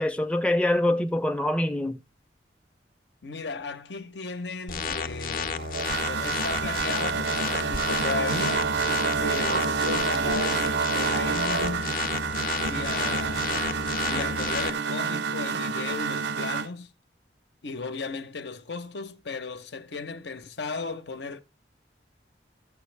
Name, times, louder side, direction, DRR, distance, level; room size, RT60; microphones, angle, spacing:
voice 1, 0.0-2.0, left 1 dB, 5° left, 0.5 m, -24 dB
voice 2, 3.2-8.7 9.2-11.9 12.6-13.6 14.0-16.9 17.6-21.4, left 4 dB, 80° left, 0.8 m, -35 dB
sound 1, 4.7-14.7, left 5 dB, 50° left, 0.7 m, -32 dB
sound 2, 5.6-16.7, right 5 dB, 80° right, 0.6 m, -28 dB
13.5 x 7.1 x 3.2 m
head